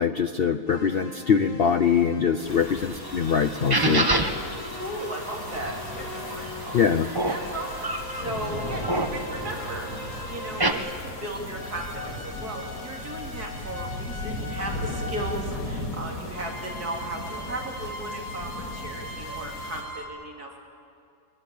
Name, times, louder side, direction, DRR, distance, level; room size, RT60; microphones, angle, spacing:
voice 1, 0.0-4.1 6.7-7.1, left 7 dB, 90° left, 8 dB, 0.5 m, -23 dB
sound 1, 0.7-2.5 3.0-6.6 7.2-11.2 11.5-15.5 16.3-20.1, left 1 dB, 30° left, 2.4 m, -41 dB
sound 2, 2.4-19.8, left 1 dB, 65° left, 3.3 m, -37 dB
sound 3, 2.5-10.7, right 2 dB, 20° right, 0.8 m, -30 dB
voice 2, 4.4-6.8 7.3-20.6, right 1 dB, 65° right, 0 dB, 3.3 m, -36 dB
20.5 x 20.0 x 8.3 m, 2.4 s
omnidirectional pair, 1.8 m